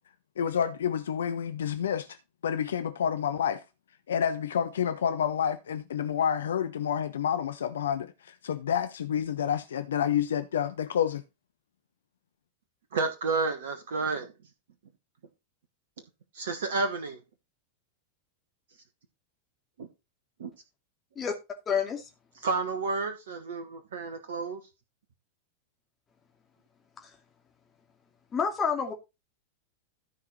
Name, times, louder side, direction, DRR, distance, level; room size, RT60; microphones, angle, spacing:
voice 1, 0.4-2.2 2.4-3.6 4.1-11.2, left 8 dB, 65° left, 0.7 m, -29 dB
voice 2, 12.9-14.3 16.3-17.2 19.8-19.9 20.4-20.5 22.4-24.6, right 4 dB, 60° right, 1.3 m, -30 dB
voice 3, 21.7-22.1 27.0-27.1 28.3-28.9, left 6 dB, 20° left, 2.5 m, -28 dB
14.0 x 4.7 x 4.1 m
figure-of-eight pair, 90°, 0 cm